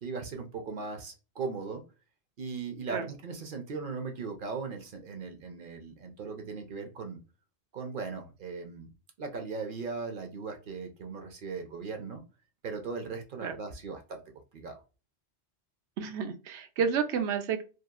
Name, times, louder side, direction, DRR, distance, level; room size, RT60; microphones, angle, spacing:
voice 1, 0.0-1.8 2.4-7.2 7.7-8.9 9.2-12.2 12.6-14.2 14.5-14.8, right 4 dB, 55° right, 4 dB, 0.7 m, -38 dB
voice 2, 16.0-17.6, right 6 dB, 80° right, 7 dB, 0.9 m, -30 dB
2.8 x 2.3 x 2.3 m, 0.32 s
omnidirectional pair, 1.1 m